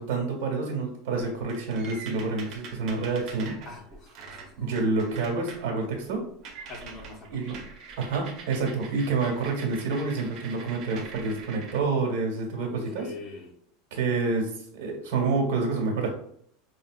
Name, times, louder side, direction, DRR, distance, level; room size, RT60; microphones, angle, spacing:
voice 1, 0.0-3.5 4.6-6.2 7.3-7.5 8.0-13.1 13.9-16.1, right 4 dB, 70° right, 1 dB, 1.6 m, -28 dB
sound 1, 1.3-5.6 6.0-6.1 6.4-11.8, right 5 dB, 45° right, 0.8 m, -44 dB
voice 2, 3.6-4.7 6.7-7.7 12.6-13.5, left 3 dB, 25° left, -1 dB, 1.1 m, -44 dB
5.4 x 2.6 x 2.5 m, 0.69 s
supercardioid pair, 130°, 0 cm